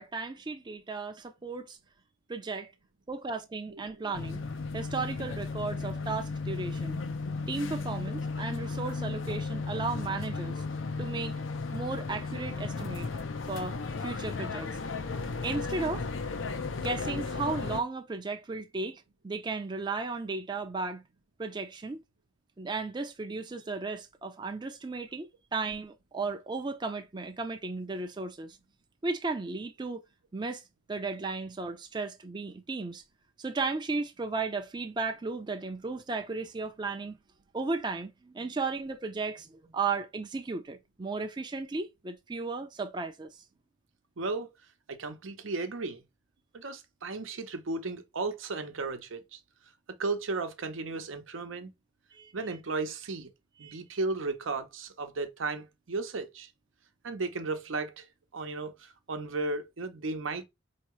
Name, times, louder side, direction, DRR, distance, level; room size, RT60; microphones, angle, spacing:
voice 1, 0.0-1.8 2.3-2.7 3.1-4.4 4.7-7.0 7.5-10.6 11.0-11.4 11.7-13.1 13.5-14.8 15.4-16.1 16.8-21.0 21.4-22.0 22.6-28.6 29.0-30.0 30.3-30.6 30.9-33.0 33.4-37.2 37.5-43.4 52.1-52.3 53.6-53.8, right 3 dB, 25° right, 0.4 m, -35 dB
sound 1, 4.1-17.8, left 4 dB, 80° left, 0.6 m, -35 dB
voice 2, 44.2-44.5 44.9-46.0 46.5-49.4 50.0-51.7 52.3-53.3 53.6-56.5 57.0-58.1 58.3-60.4, right 3 dB, 85° right, 0.7 m, -35 dB
4.6 x 2.8 x 3.0 m
head